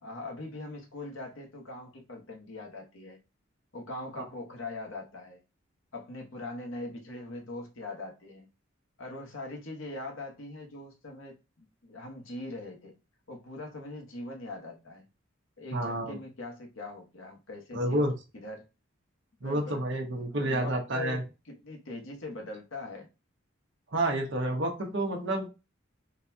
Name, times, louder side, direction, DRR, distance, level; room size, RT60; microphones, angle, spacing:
voice 1, 0.0-3.2 3.7-5.4 5.9-8.5 9.0-13.0 13.3-15.1 15.6-18.1 18.3-18.7 19.4-19.8 20.3-23.1, left 2 dB, 80° left, 1.1 m, -41 dB
voice 2, 15.7-16.2 17.7-18.2 19.4-21.2 23.9-25.5, right 1 dB, 60° right, 0.9 m, -29 dB
3.9 x 2.3 x 2.6 m
head